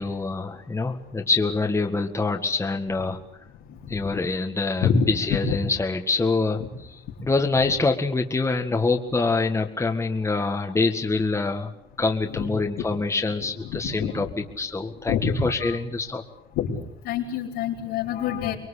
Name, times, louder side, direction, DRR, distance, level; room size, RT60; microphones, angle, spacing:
voice 1, 0.0-3.2 3.9-11.7 12.0-16.2, left 3 dB, 15° left, 3 dB, 1.8 m, -25 dB
voice 2, 17.0-18.5, left 7 dB, 85° left, -7 dB, 4.4 m, -25 dB
25.0 x 21.5 x 8.4 m, 0.78 s
cardioid pair, 110°, 17 cm